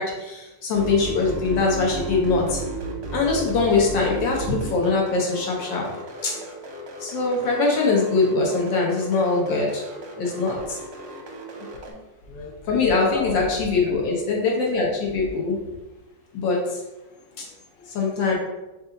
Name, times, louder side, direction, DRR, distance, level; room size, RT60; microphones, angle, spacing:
voice 1, 0.0-2.6 3.1-5.8 6.2-6.3 7.0-9.8 10.2-10.8 12.7-15.6 16.3-16.6 17.4-17.5 18.0-18.4, left 3 dB, 75° left, -2 dB, 1.6 m, -22 dB
sound 1, 0.8-11.9, right 2 dB, 55° right, 0.8 m, -35 dB
voice 2, 12.3-13.9 17.1-18.2, left 2 dB, 55° left, 0 dB, 1.2 m, -36 dB
5.4 x 2.5 x 3.9 m, 1.0 s
omnidirectional pair, 2.0 m